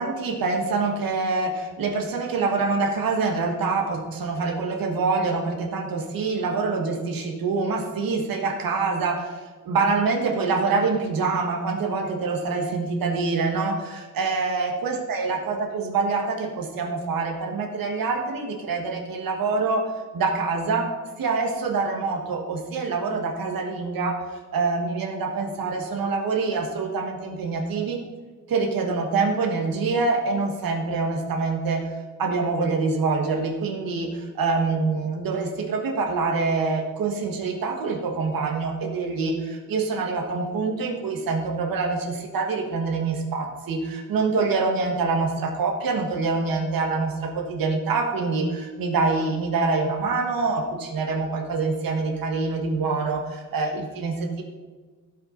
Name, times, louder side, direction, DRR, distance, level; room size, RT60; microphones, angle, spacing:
voice 1, 0.0-19.8 20.1-20.9 21.2-28.0 28.5-54.4, right 4 dB, 80° right, 1 dB, 1.6 m, -25 dB
17.0 x 5.9 x 3.9 m, 1.4 s
cardioid pair, 120°, 34 cm